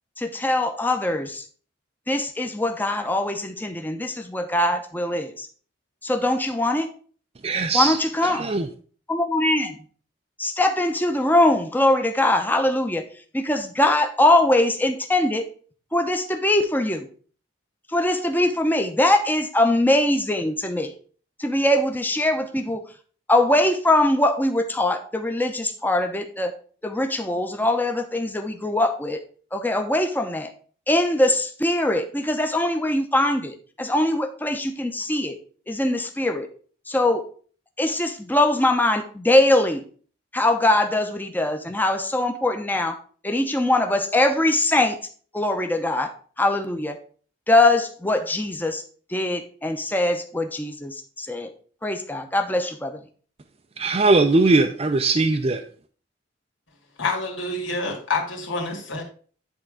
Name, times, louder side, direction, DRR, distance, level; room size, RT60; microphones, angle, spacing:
voice 1, 0.2-1.5 2.1-5.5 6.0-6.9 7.7-8.5 9.1-9.8 10.4-13.0 13.3-15.4 15.9-17.1 17.9-20.9 21.4-22.8 23.3-26.5 26.8-29.2 29.5-30.5 30.9-35.4 35.7-36.5 36.9-37.2 37.8-39.8 40.3-43.0 43.2-45.0 45.3-46.1 46.4-47.0 47.5-48.8 49.1-51.5 51.8-53.0, left 1 dB, 10° left, 6 dB, 0.8 m, -22 dB
voice 2, 7.4-8.7 53.8-55.6, right 3 dB, 30° right, 6 dB, 0.5 m, -20 dB
voice 3, 57.0-59.0, left 3 dB, 85° left, 0 dB, 2.4 m, -27 dB
10.0 x 3.6 x 4.9 m, 0.43 s
head